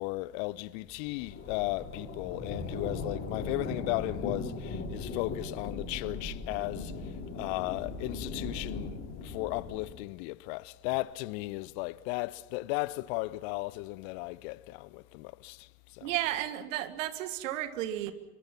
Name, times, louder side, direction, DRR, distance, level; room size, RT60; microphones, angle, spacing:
voice 1, 0.0-6.9 7.3-16.1, left 21 dB, 45° left, 0.8 m, -35 dB
sound 1, 0.9-9.9, left 3 dB, 30° left, 6.6 m, -38 dB
voice 2, 16.0-18.1, right 13 dB, 60° right, 2.0 m, -33 dB
27.5 x 24.0 x 5.8 m
figure-of-eight pair, 70°, 43 cm